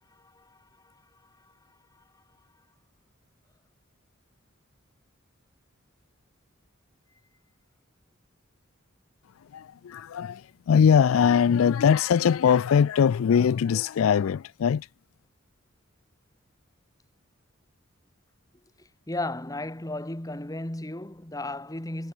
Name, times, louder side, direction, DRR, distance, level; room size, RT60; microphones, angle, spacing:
voice 1, 0.1-0.9 1.4-1.5 18.8-22.1, left 2 dB, 15° left, 1.5 m, -35 dB
voice 2, 9.5-14.9, left 7 dB, 75° left, 0.3 m, -21 dB
head